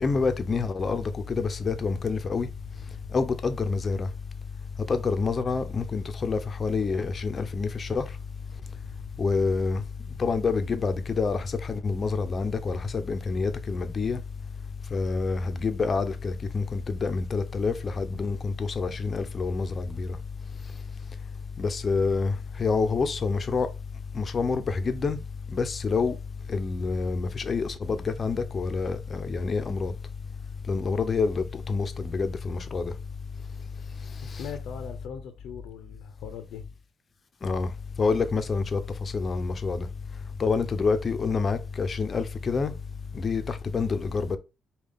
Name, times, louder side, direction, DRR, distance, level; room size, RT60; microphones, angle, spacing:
voice 1, 0.0-2.5 3.1-4.1 4.9-8.0 9.2-9.8 10.2-14.2 14.9-20.2 21.6-23.7 24.1-25.2 25.5-26.2 26.5-29.9 30.7-32.9 34.3-34.5 37.4-37.7 38.0-39.9 40.4-42.7 43.1-44.4, left 4 dB, 40° left, 0.7 m, -27 dB
voice 2, 34.2-36.6, left 7 dB, 85° left, 0.6 m, -40 dB
5.1 x 2.4 x 3.6 m
cardioid pair, 90°, 0 cm